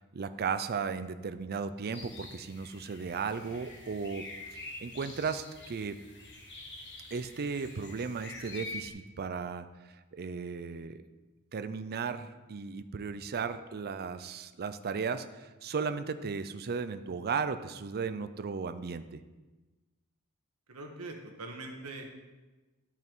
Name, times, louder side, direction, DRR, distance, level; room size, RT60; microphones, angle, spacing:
voice 1, 0.1-6.0 7.1-9.7 10.1-11.0 11.5-19.2, right 5 dB, 45° right, 11 dB, 0.5 m, -35 dB
sound 1, 1.9-8.9, left 2 dB, 55° left, 1.4 m, -46 dB
voice 2, 20.7-22.0, right 2 dB, 85° right, 2 dB, 1.5 m, -42 dB
11.5 x 5.7 x 4.6 m, 1.2 s
head